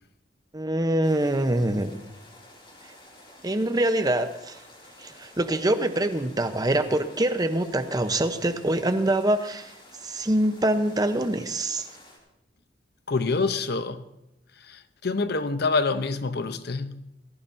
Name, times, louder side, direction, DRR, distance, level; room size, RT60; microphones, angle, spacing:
voice 1, 0.5-2.0 3.4-4.6 5.0-9.7 10.0-11.9, right 1 dB, 20° right, 0.8 m, -24 dB
sound 1, 1.0-12.2, left 1 dB, 30° left, 4.0 m, -51 dB
voice 2, 13.1-14.0 14.7-17.0, left 4 dB, 60° left, 0.7 m, -26 dB
18.5 x 17.0 x 2.7 m
head